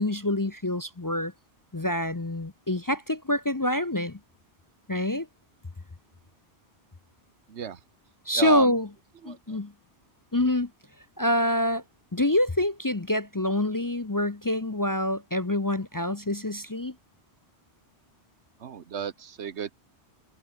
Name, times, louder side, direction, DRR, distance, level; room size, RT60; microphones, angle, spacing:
voice 1, 0.0-1.3 1.7-4.2 4.9-5.3 8.3-8.9 9.2-9.7 10.3-10.7 11.2-11.8 12.1-16.9, left 1 dB, 20° left, 0.7 m, -26 dB
voice 2, 7.5-7.8 8.3-8.8 9.2-9.6 18.6-19.7, right 7 dB, 80° right, 1.3 m, -34 dB
omnidirectional pair, 1.1 m